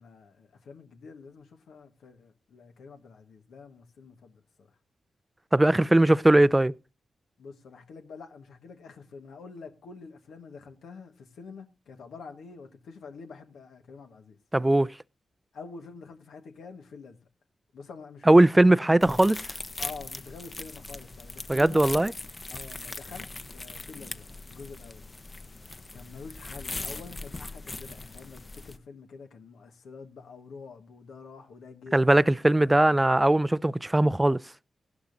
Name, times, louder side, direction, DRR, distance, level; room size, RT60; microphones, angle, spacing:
voice 1, 0.0-4.7 5.8-6.3 7.4-14.4 15.5-17.3 17.7-18.4 18.7-18.9 19.8-22.1 22.5-25.1 25.9-32.0, left 4 dB, 80° left, 1.4 m, -46 dB
voice 2, 5.5-6.7 14.5-14.9 18.3-19.5 21.5-22.1 31.9-34.4, right 1 dB, 20° right, 0.5 m, -20 dB
sound 1, 19.0-28.8, left 3 dB, 35° left, 1.0 m, -40 dB
17.0 x 11.5 x 2.6 m
supercardioid pair, 45°, 0 cm